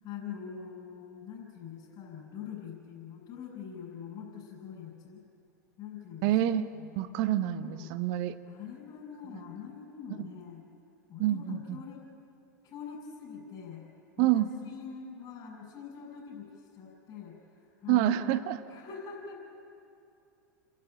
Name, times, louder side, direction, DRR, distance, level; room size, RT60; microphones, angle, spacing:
voice 1, 0.0-5.2 5.8-6.3 6.7-6.9 7.6-7.9 8.4-10.6 11.1-12.1 12.6-13.8 14.2-18.3 18.7-19.5, left 7 dB, 40° left, -5 dB, 6.7 m, -44 dB
voice 2, 6.2-6.7 7.0-8.3 10.2-10.3 11.2-11.8 14.2-14.5 17.9-18.6, right 13 dB, 55° right, 11 dB, 1.1 m, -27 dB
29.5 x 12.0 x 8.9 m, 2.7 s
hypercardioid pair, 90°, 10 cm